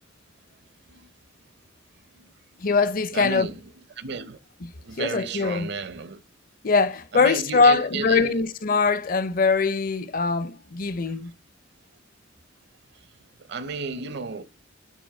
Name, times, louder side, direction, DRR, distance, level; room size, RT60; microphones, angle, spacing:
voice 1, 2.6-3.5 4.6-4.7 5.0-5.7 6.6-11.3, left 4 dB, 45° left, 0.6 m, -22 dB
voice 2, 3.1-3.6 4.0-4.4 4.7-6.2 7.1-8.3 13.5-14.4, right 4 dB, 60° right, 0.7 m, -33 dB
8.5 x 3.0 x 5.8 m
head